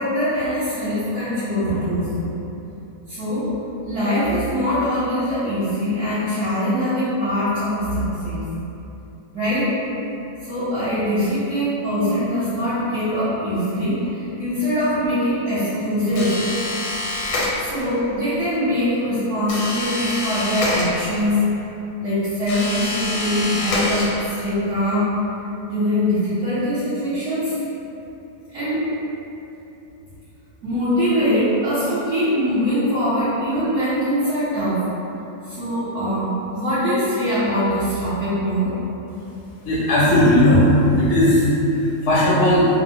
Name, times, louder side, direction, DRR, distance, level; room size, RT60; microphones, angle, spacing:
voice 1, 0.0-2.3 3.1-3.5 3.8-8.5 9.3-9.7 10.4-16.4 17.6-21.4 22.0-25.2 25.7-27.6 28.5-28.9 30.6-34.8 35.5-38.7, equal, 60° right, -13 dB, 1.0 m, -22 dB
sound 1, 16.2-18.0 19.5-21.4 22.4-24.5, left 1 dB, 85° left, 1.2 m, -26 dB
voice 2, 39.6-40.6 41.0-41.5 42.0-42.7, left 1 dB, 70° left, -7 dB, 0.7 m, -16 dB
2.8 x 2.0 x 3.5 m, 2.9 s
omnidirectional pair, 1.6 m